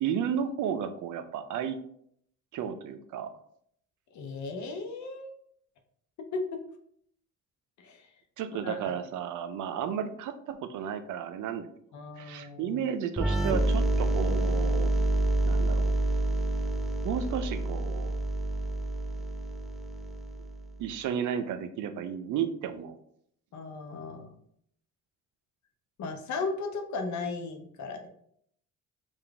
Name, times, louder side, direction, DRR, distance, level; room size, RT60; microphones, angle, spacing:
voice 1, 0.0-1.8 2.5-3.3 8.4-11.7 12.2-14.9 15.4-15.9 17.0-18.1 20.8-22.9, right 8 dB, 75° right, 9 dB, 0.5 m, -33 dB
voice 2, 4.1-5.3 6.3-6.6 7.8-8.1 8.5-8.8 11.9-12.8 23.5-24.4 26.0-28.1, left 3 dB, 70° left, 5 dB, 0.8 m, -36 dB
sound 1, 13.2-20.7, right 2 dB, ahead, 0.4 m, -28 dB
3.9 x 2.4 x 3.3 m, 0.67 s
cardioid pair, 90°, 30 cm